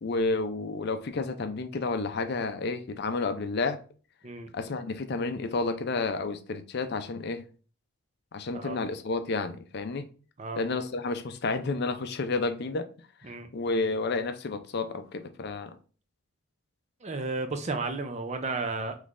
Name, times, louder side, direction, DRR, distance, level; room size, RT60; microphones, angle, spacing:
voice 1, 0.0-3.8 4.5-7.4 8.3-10.1 10.6-12.9 13.3-15.7, left 3 dB, 50° left, 0.5 m, -31 dB
voice 2, 17.0-19.0, right 3 dB, 35° right, 0.5 m, -33 dB
5.2 x 3.2 x 2.5 m
head